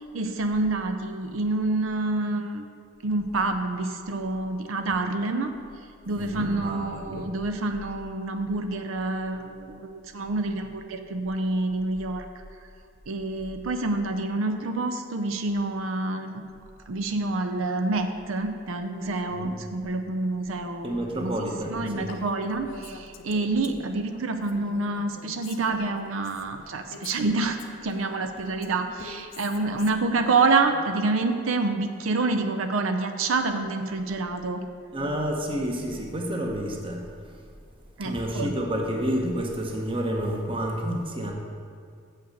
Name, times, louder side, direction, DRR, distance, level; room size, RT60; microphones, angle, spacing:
voice 1, 0.1-2.7 3.0-5.5 6.1-12.2 13.1-16.4 16.9-20.9 21.2-21.3 21.7-27.6 27.8-34.6 38.0-38.5, right 3 dB, 90° right, 7 dB, 0.6 m, -27 dB
voice 2, 6.2-7.3 19.3-19.5 20.8-22.2 34.9-37.4 38.0-41.3, equal, 25° right, 1 dB, 0.9 m, -30 dB
Female speech woman speaking, 22.1-24.0 24.4-26.4 26.9-31.0, left 3 dB, 70° left, 0.7 m, -44 dB
7.5 x 5.7 x 6.4 m, 2.2 s
head